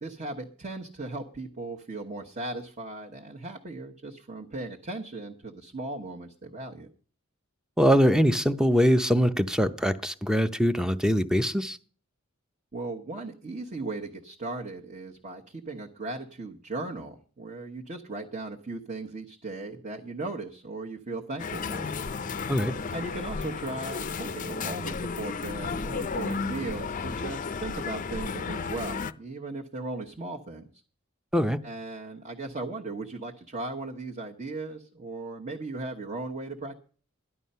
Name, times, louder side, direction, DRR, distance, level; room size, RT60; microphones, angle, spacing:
voice 1, 0.0-6.9 12.7-21.9 22.2-22.4 22.9-30.7 31.6-36.8, right 2 dB, 35° right, -1 dB, 1.2 m, -37 dB
voice 2, 7.8-11.8 22.5-22.7 31.3-31.6, equal, 5° right, 10 dB, 0.6 m, -23 dB
sound 1, 21.4-29.1, left 4 dB, 40° left, 0.5 m, -33 dB
14.0 x 11.0 x 5.5 m, 0.42 s
head